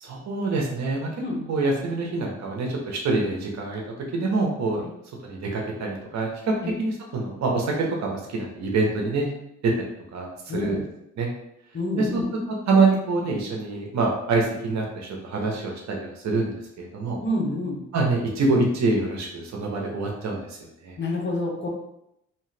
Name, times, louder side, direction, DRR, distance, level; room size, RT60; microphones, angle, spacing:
voice 1, 0.0-1.1 1.5-3.8 4.1-4.8 5.2-6.3 6.8-9.3 9.6-9.7 10.1-10.8 11.2-11.3 12.0-12.2 12.7-17.2 17.9-20.6 20.8-21.0, right 3 dB, 65° right, 0 dB, 0.9 m, -25 dB
voice 2, 10.5-10.8 11.7-12.3 17.2-17.8 21.0-21.7, left 1 dB, 40° left, 0 dB, 0.8 m, -28 dB
2.8 x 2.3 x 3.2 m, 0.81 s
cardioid pair, 90°, 30 cm